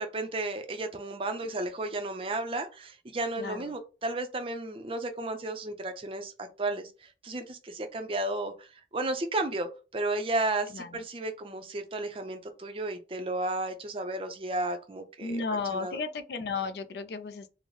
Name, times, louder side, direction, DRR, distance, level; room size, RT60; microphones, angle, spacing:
voice 1, 0.0-8.7 8.9-15.4 15.7-16.0, right 2 dB, 30° right, 0.4 m, -33 dB
voice 2, 3.4-3.7 10.7-11.0 15.2-17.5, left 4 dB, 70° left, 0.4 m, -34 dB
3.8 x 2.0 x 3.0 m
head